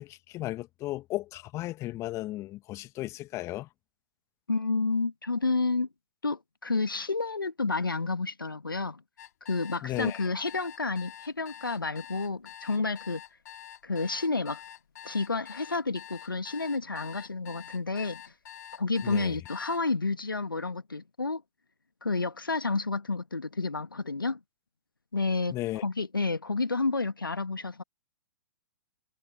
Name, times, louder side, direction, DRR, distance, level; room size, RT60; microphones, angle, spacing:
voice 1, 0.0-3.7 9.8-10.2 19.0-19.4 25.5-25.8, left 16 dB, 25° left, 1.8 m, -35 dB
voice 2, 4.5-5.9 6.2-9.0 9.5-13.2 13.8-14.6 15.0-18.2 18.8-21.4 22.0-24.4 25.1-25.6 25.8-27.8, left 3 dB, 80° left, 1.7 m, -30 dB
sound 1, 9.2-19.8, left 11 dB, 55° left, 4.6 m, -46 dB
figure-of-eight pair, 110°, 11 cm